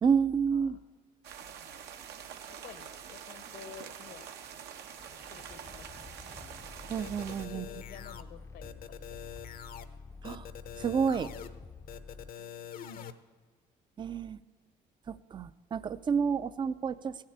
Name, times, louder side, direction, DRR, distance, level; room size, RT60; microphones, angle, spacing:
voice 1, 0.0-0.8 6.9-7.7 10.2-10.5 10.8-11.3 14.0-14.4 15.1-17.2, right 6 dB, 25° right, 16 dB, 0.4 m, -29 dB
sound 1, 1.2-7.5, right 8 dB, 75° right, 1.0 m, -46 dB
voice 2, 1.4-2.1 2.5-4.3 5.3-6.1 7.3-9.3, left 9 dB, 75° left, 11 dB, 1.2 m, -52 dB
sound 2, 5.0-12.3, left 4 dB, 20° left, 0.5 m, -49 dB
sound 3, 7.0-8.2 8.6-9.9 10.2-11.5 11.9-13.1, left 9 dB, 55° left, 0.7 m, -44 dB
15.0 x 7.4 x 8.6 m, 1.4 s
cardioid pair, 110°, 17 cm